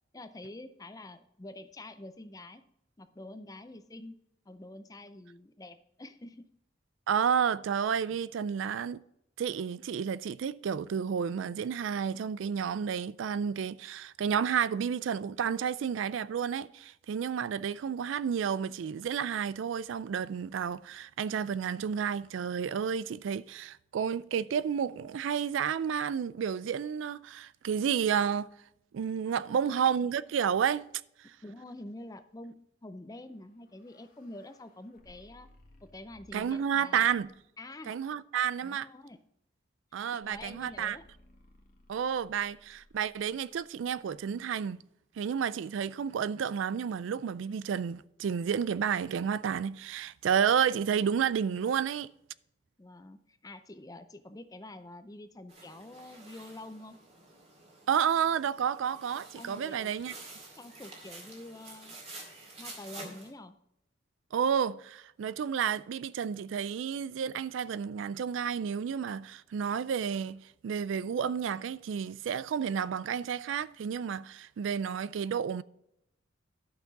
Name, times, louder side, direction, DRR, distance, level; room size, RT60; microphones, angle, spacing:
voice 1, 0.1-2.6 3.0-4.1 4.5-6.5 29.2-29.8 31.4-35.5 35.8-37.1 37.6-38.0 38.6-39.2 40.1-41.0 52.8-57.0 59.3-59.9 60.6-62.0 62.6-63.6, left 1 dB, 20° left, 0.5 m, -47 dB
voice 2, 7.1-9.0 9.4-28.5 28.9-30.8 31.2-31.4 36.3-37.3 37.9-38.9 39.9-41.0 41.9-44.8 45.2-52.1 57.9-60.1 64.3-75.6, right 7 dB, 75° right, 0.3 m, -31 dB
sound 1, 33.3-36.6 37.1-37.6 40.2-44.3, left 1 dB, 45° left, 1.5 m, -61 dB
sound 2, 55.5-63.3, right 2 dB, 35° right, 2.1 m, -49 dB
11.5 x 5.9 x 4.0 m
head